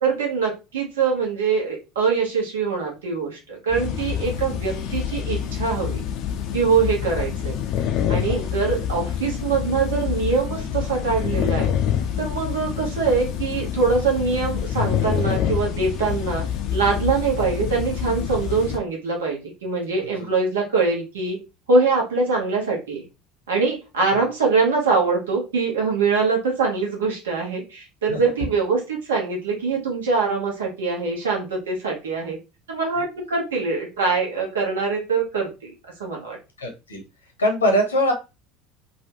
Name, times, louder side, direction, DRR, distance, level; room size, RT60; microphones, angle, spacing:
voice 1, 0.0-6.0 6.5-7.6 8.1-11.7 12.2-16.4 16.7-21.4 21.7-23.0 23.5-32.4 32.7-35.7 36.0-36.4, right 4 dB, 70° right, -1 dB, 1.0 m, -23 dB
sound 1, 3.7-18.8, left 9 dB, 50° left, 0.5 m, -26 dB
voice 2, 36.6-37.0 37.4-38.1, equal, 80° left, 2 dB, 0.9 m, -21 dB
3.1 x 2.5 x 2.9 m, 0.27 s
figure-of-eight pair, 70°, 0 cm